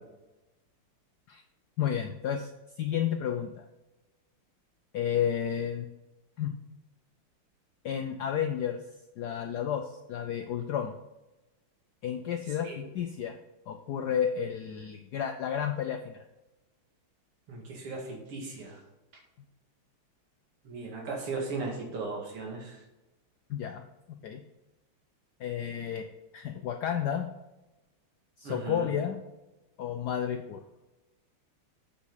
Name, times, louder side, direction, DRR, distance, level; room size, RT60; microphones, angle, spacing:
voice 1, 1.8-2.5 2.8-3.6 4.9-5.8 6.4-6.6 7.8-8.8 9.2-10.9 12.0-13.4 13.7-16.2 23.5-24.4 25.4-26.1 26.3-27.3 28.4-29.2 29.8-30.6, left 9 dB, 85° left, 6 dB, 0.9 m, -31 dB
voice 2, 17.5-18.8 20.6-22.8 28.4-28.9, right 3 dB, 85° right, 0 dB, 2.9 m, -37 dB
8.4 x 5.9 x 3.9 m, 1.0 s
omnidirectional pair, 2.4 m